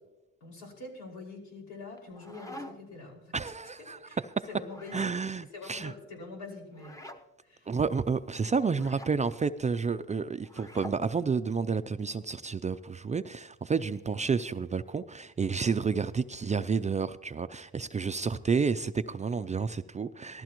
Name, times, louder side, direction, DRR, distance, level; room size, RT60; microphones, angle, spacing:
voice 1, 0.4-3.3 3.8-4.2 4.5-7.0 7.4-7.7 8.4-9.0, left 3 dB, 75° left, 5.5 m, -45 dB
sound 1, 1.9-3.0 4.6-5.2 6.7-7.2 8.7-9.2 10.4-11.0, left 1 dB, 10° left, 1.0 m, -46 dB
voice 2, 3.3-4.0 4.4-4.5 4.9-5.9 7.7-20.4, right 5 dB, 25° right, 0.4 m, -30 dB
19.0 x 14.0 x 3.0 m
cardioid pair, 90°, 30 cm